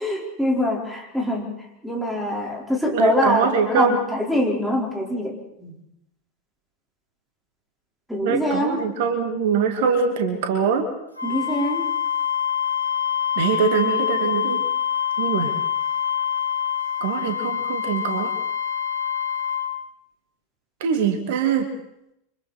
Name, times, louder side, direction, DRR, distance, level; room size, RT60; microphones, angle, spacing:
voice 1, 0.0-1.5 1.8-5.7 8.1-8.8 11.2-11.9, left 1 dB, ahead, 0 dB, 4.4 m, -24 dB
voice 2, 2.9-4.0 8.2-10.9 13.4-14.6 15.2-15.5 17.0-18.3 20.8-21.7, right 6 dB, 50° right, 6 dB, 2.4 m, -23 dB
Wind instrument woodwind instrument, 11.2-19.7, left 9 dB, 90° right, 2.8 m, -25 dB
29.0 x 25.0 x 4.3 m, 0.82 s
figure-of-eight pair, 90°, 0 cm